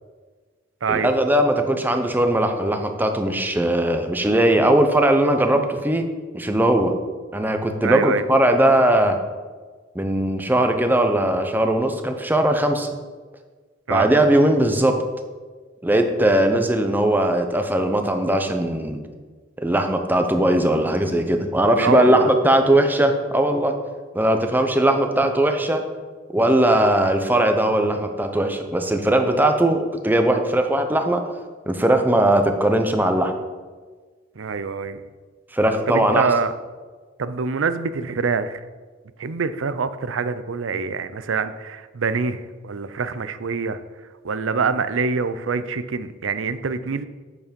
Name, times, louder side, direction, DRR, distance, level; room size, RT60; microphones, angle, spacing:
voice 1, 0.9-6.0 6.3-6.9 7.3-9.2 9.9-12.9 13.9-14.9 15.8-19.0 19.6-23.7 24.1-25.8 26.3-31.2 31.7-33.3 35.5-36.3, right 1 dB, 10° right, 6 dB, 0.7 m, -19 dB
voice 2, 7.8-8.2 13.9-14.1 21.8-22.3 34.4-35.0 35.9-36.5 37.2-38.6 39.2-43.8 44.2-47.0, right 5 dB, 85° right, 13 dB, 0.5 m, -25 dB
8.3 x 7.0 x 5.2 m, 1.4 s
head